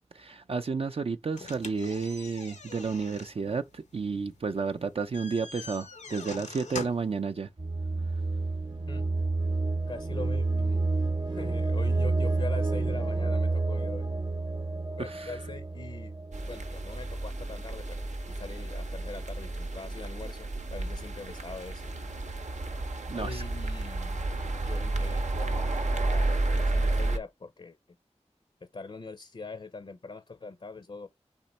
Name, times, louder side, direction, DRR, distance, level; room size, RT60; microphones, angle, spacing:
voice 1, 0.1-7.5 15.0-15.4 23.1-23.4, right 5 dB, 55° right, 0.4 m, -32 dB
sound 1, 1.3-7.2, left 4 dB, 90° left, 0.7 m, -43 dB
sound 2, 7.6-17.4, right 3 dB, 35° right, 0.8 m, -29 dB
voice 2, 9.9-10.8 11.3-14.1 15.0-16.1 16.5-21.9 23.1-24.3 24.7-25.6 26.0-27.8 28.6-31.1, left 3 dB, 55° left, 0.5 m, -43 dB
sound 3, 16.3-27.2, right 2 dB, 85° right, 0.7 m, -31 dB
4.2 x 2.9 x 4.1 m
wide cardioid pair, 55°, 12 cm